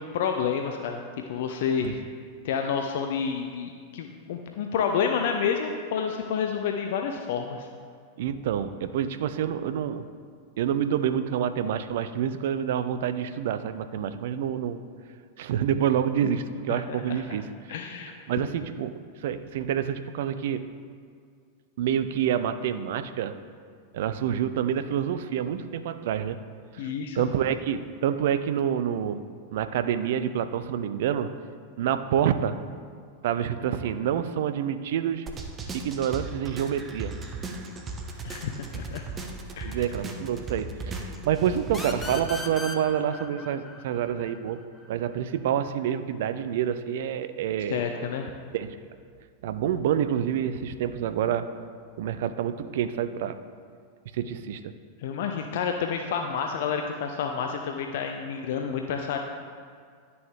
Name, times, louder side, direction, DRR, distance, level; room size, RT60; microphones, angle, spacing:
voice 1, 0.1-1.0 1.3-2.1 2.4-7.7 16.7-17.0 17.7-18.5 26.8-27.2 38.2-39.0 39.6-39.8 47.7-48.3 55.0-59.2, left 6 dB, 55° left, 4 dB, 0.5 m, -29 dB
voice 2, 8.2-10.0 10.6-14.8 15.4-17.8 18.3-20.7 21.8-23.3 23.9-26.4 26.7-26.9 27.1-29.2 29.5-31.3 31.8-32.6 33.2-35.3 35.7-37.1 39.6-44.6 44.9-47.8 48.5-48.8 49.4-51.5 52.0-53.4 54.1-54.7, right 9 dB, 55° right, 11 dB, 0.4 m, -27 dB
sound 1, 35.3-42.2, right 3 dB, 20° right, 0.9 m, -37 dB
sound 2, 41.7-45.1, left 2 dB, 15° left, 0.8 m, -39 dB
10.5 x 6.8 x 3.3 m, 2.1 s
figure-of-eight pair, 90°, 0 cm